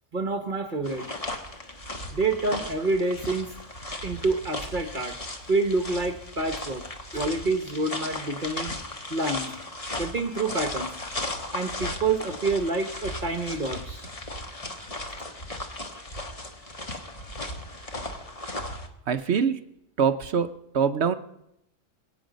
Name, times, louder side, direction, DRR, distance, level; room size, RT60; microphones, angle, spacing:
voice 1, 0.1-1.0 2.1-3.5 4.0-5.2 5.5-6.8 7.1-8.7 9.1-9.5 10.0-10.9 11.5-14.1, right 3 dB, 40° right, 6 dB, 1.2 m, -27 dB
sound 1, 0.8-18.9, left 1 dB, 25° left, 1.4 m, -36 dB
voice 2, 19.1-19.6 20.0-21.1, right 6 dB, 60° right, 10 dB, 0.9 m, -24 dB
23.5 x 8.4 x 5.1 m, 0.82 s
omnidirectional pair, 1.4 m